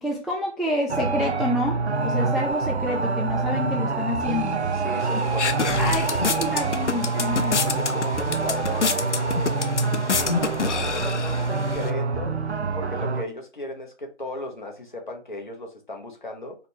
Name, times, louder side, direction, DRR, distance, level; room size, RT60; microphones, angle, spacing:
voice 1, 0.0-4.6 5.8-7.6, left 1 dB, ahead, 0.3 m, -28 dB
sound 1, 0.9-13.2, right 4 dB, 70° right, 0.6 m, -26 dB
voice 2, 4.7-6.5 7.1-7.4 7.6-16.6, left 1 dB, 45° left, 0.9 m, -36 dB
sound 2, 5.0-11.9, left 5 dB, 80° left, 0.5 m, -28 dB
3.7 x 2.2 x 2.9 m
figure-of-eight pair, 160°, 35 cm